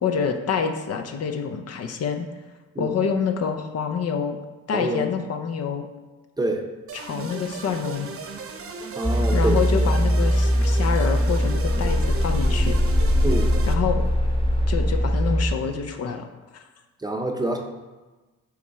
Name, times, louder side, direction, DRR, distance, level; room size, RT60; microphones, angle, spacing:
voice 1, 0.0-2.3 2.8-4.4 4.7-5.9 6.9-8.1 9.3-12.8 13.7-14.1 14.7-16.3 16.5-16.6, left 6 dB, 55° left, 6 dB, 0.7 m, -27 dB
voice 2, 4.7-5.1 6.4-6.7 9.0-9.6 13.2-13.5 17.0-17.6, right 2 dB, 15° right, 3 dB, 0.7 m, -26 dB
sound 1, 6.9-13.7, right 4 dB, 50° right, 0.8 m, -36 dB
sound 2, 9.0-15.5, equal, 15° left, 1.3 m, -21 dB
6.9 x 3.2 x 4.7 m, 1.2 s
cardioid pair, 90°, 30 cm